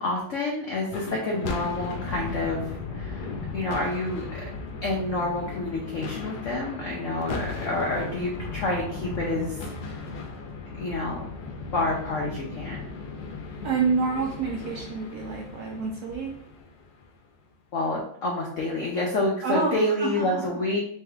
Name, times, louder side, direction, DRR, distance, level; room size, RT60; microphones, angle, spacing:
voice 1, 0.0-3.3 3.5-4.3 4.8-9.6 10.8-11.3 11.7-12.9 17.7-20.8, left 2 dB, 90° left, -1 dB, 0.6 m, -28 dB
sound 1, 0.9-17.2, left 3 dB, 65° left, 1.0 m, -36 dB
voice 2, 13.6-16.3 19.4-20.6, right 5 dB, 75° right, -1 dB, 0.8 m, -28 dB
3.5 x 3.1 x 3.4 m, 0.66 s
omnidirectional pair, 2.2 m